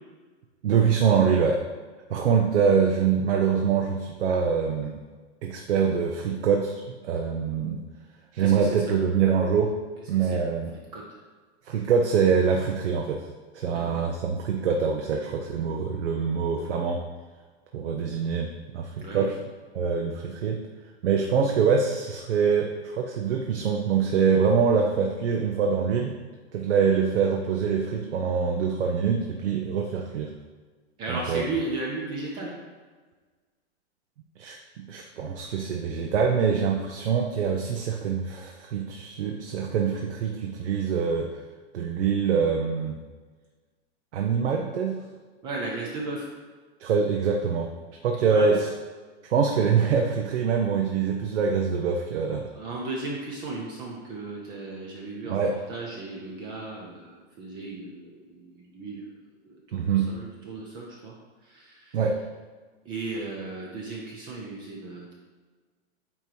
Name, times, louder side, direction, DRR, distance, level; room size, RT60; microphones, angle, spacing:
voice 1, 0.6-1.6 2.1-5.0 5.4-7.8 8.3-9.7 10.1-10.7 11.7-13.2 13.5-17.0 17.7-18.5 18.7-19.3 19.7-20.6 21.0-26.1 26.5-30.3 31.1-31.4 34.4-41.3 41.7-43.0 44.1-45.0 46.8-47.7 48.0-48.7 49.2-52.5 55.3-55.5 59.7-60.1 61.9-62.2, right 6 dB, 80° right, 1 dB, 0.8 m, -24 dB
voice 2, 8.4-9.1 10.2-10.5 10.9-11.0 13.7-14.0 19.0-19.3 31.0-32.5 45.4-46.3 48.3-48.5 52.5-55.4 55.7-59.1 59.4-61.1 61.4-62.0 62.8-65.1, right 3 dB, 15° right, -2 dB, 0.4 m, -35 dB
8.8 x 3.0 x 4.6 m, 1.4 s
hypercardioid pair, 155°, 34 cm